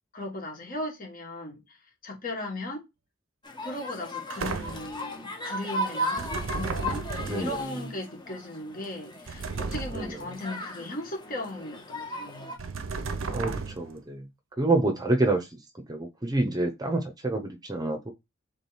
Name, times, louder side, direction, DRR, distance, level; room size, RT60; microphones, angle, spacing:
voice 1, 0.1-1.6 2.0-2.8 3.6-6.3 6.6-12.6, left 1 dB, 45° left, 1.6 m, -37 dB
sound 1, 3.4-12.6, equal, 25° left, 0.9 m, -36 dB
sound 2, 4.3-5.0 6.2-7.6 9.3-10.3 12.6-14.0, right 4 dB, 90° right, 0.6 m, -34 dB
voice 2, 7.3-7.6 9.9-10.2 13.3-14.3 14.6-15.5 15.9-18.1, right 2 dB, 20° right, 0.7 m, -27 dB
3.6 x 3.3 x 4.1 m
head